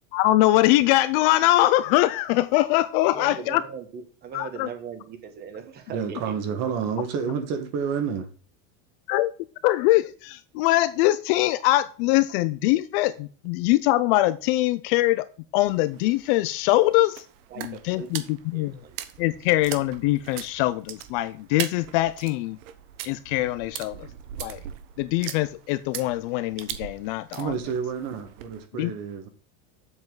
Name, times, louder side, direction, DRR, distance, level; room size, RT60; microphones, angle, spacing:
voice 1, 0.1-3.7 4.3-4.7 9.1-9.3 9.6-15.3 15.5-17.3 17.6-18.7 19.2-22.6 23.0-24.1 24.4-24.6 25.0-27.5 28.8-28.9, left 16 dB, 45° left, 0.5 m, -23 dB
voice 2, 3.1-6.2 17.5-19.0, right 6 dB, 25° right, 1.1 m, -40 dB
voice 3, 5.6-8.3 27.3-29.3, right 6 dB, 40° right, 1.5 m, -29 dB
Walking through puddle, 15.6-28.7, right 11 dB, 70° right, 1.1 m, -40 dB
7.8 x 7.0 x 3.9 m
supercardioid pair, 170°, 38 cm